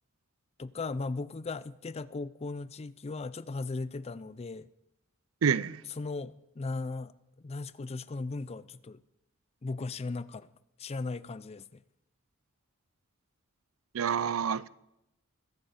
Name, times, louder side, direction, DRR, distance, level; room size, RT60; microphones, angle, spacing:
voice 1, 0.6-4.7 6.0-7.1 7.4-9.0 9.6-10.5 10.8-11.8, left 3 dB, 30° left, 0.4 m, -37 dB
voice 2, 5.4-5.8 13.9-14.7, right 7 dB, 75° right, 0.5 m, -28 dB
22.0 x 8.0 x 5.0 m
head